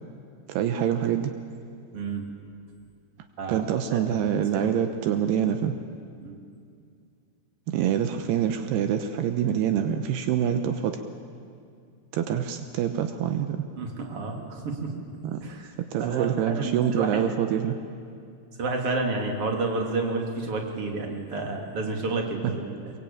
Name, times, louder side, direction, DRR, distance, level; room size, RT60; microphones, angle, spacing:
voice 1, 0.5-1.3 3.5-5.8 7.7-11.0 12.1-13.7 15.2-15.4 15.9-17.8 22.4-22.5, right 9 dB, 80° right, 7 dB, 3.0 m, -25 dB
voice 2, 1.9-2.2 3.4-3.6 3.9-4.3 4.5-4.8 6.2-6.4 13.8-14.9 15.4-15.7 16.0-17.2 18.6-22.9, right 3 dB, 35° right, 2 dB, 3.5 m, -30 dB
25.0 x 23.0 x 8.8 m, 2.4 s
omnidirectional pair, 4.6 m